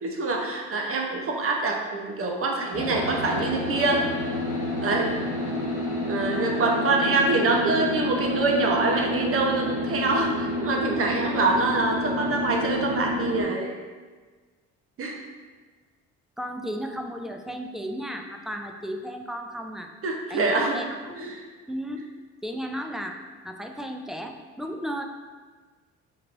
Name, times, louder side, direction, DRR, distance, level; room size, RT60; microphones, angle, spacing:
voice 1, 0.0-4.1 4.8-5.1 6.1-13.8 15.0-15.1 20.0-20.8 21.2-21.4, right 3 dB, 45° right, 1 dB, 0.8 m, -25 dB
sound 1, 2.7-13.4, left 1 dB, 25° left, 1.2 m, -29 dB
voice 2, 7.1-7.5 16.4-19.9 20.3-21.3 21.7-22.1 22.4-25.0, equal, ahead, 3 dB, 0.3 m, -35 dB
4.6 x 2.9 x 2.5 m, 1.4 s
supercardioid pair, 65°, 33 cm